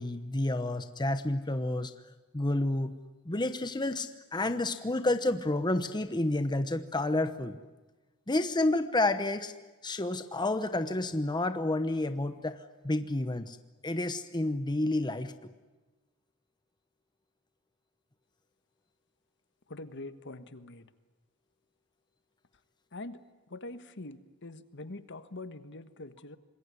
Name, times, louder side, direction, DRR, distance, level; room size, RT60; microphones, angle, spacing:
voice 1, 0.0-1.9 2.3-2.9 3.3-7.6 8.3-9.5 9.8-13.6 13.8-15.3, left 2 dB, 20° left, 10 dB, 1.0 m, -30 dB
voice 2, 19.7-20.9 22.9-26.4, left 2 dB, 55° left, 11 dB, 1.4 m, -44 dB
26.5 x 21.5 x 9.7 m, 1.2 s
head